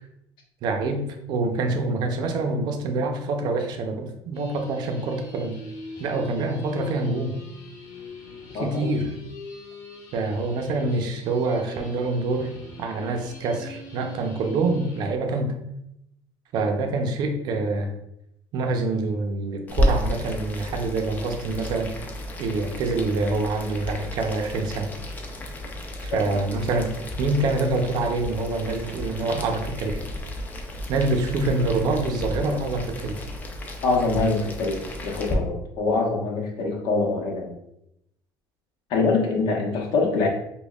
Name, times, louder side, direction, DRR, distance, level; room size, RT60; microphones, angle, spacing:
voice 1, 0.6-5.6 6.0-7.4 8.6-9.0 10.1-15.6 16.5-17.9 18.5-22.0 22.4-24.9 26.0-30.0 30.9-33.3, right 3 dB, 55° right, 4 dB, 0.6 m, -26 dB
sound 1, 4.3-15.1, left 2 dB, 50° left, 1.3 m, -42 dB
voice 2, 8.5-8.9 33.8-37.5 38.9-40.3, left 3 dB, 70° left, 0 dB, 0.9 m, -24 dB
Boiling, 19.7-35.3, left 1 dB, 20° left, 0.5 m, -32 dB
5.2 x 2.2 x 2.3 m, 0.80 s
cardioid pair, 140°, 8 cm